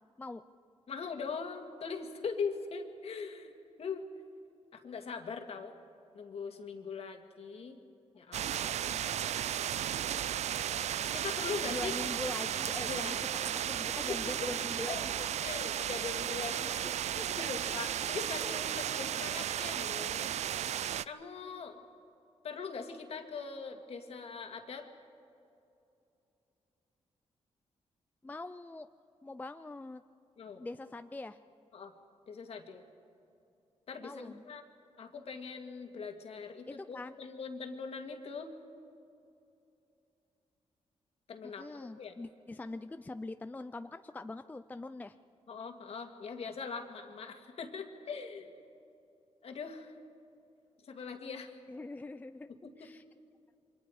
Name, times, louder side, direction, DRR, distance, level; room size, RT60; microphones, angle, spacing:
voice 1, 0.9-3.5 3.8-4.1 4.7-5.8 6.1-7.8 8.1-9.0 11.1-12.0 12.9-13.1 14.1-14.2 14.9-16.9 17.3-20.5 21.0-21.8 22.4-24.9 30.4-30.6 31.7-31.9 32.3-32.8 33.9-34.6 35.0-38.5 41.3-41.6 42.0-42.2 45.5-48.6 49.4-50.0 50.8-51.6 52.5-52.9, left 5 dB, 60° left, 5 dB, 2.0 m, -41 dB
sound 1, 8.3-21.1, right 10 dB, 70° right, 0.4 m, -34 dB
voice 2, 11.6-13.2 13.7-15.1 16.8-17.4 18.2-18.5 28.2-28.9 29.2-30.0 30.6-31.4 34.0-34.4 36.7-37.2 41.4-45.2 51.7-52.5 52.8-53.0, left 2 dB, 15° left, 10 dB, 0.4 m, -43 dB
28.5 x 24.0 x 4.9 m, 2.7 s
wide cardioid pair, 130°, 12 cm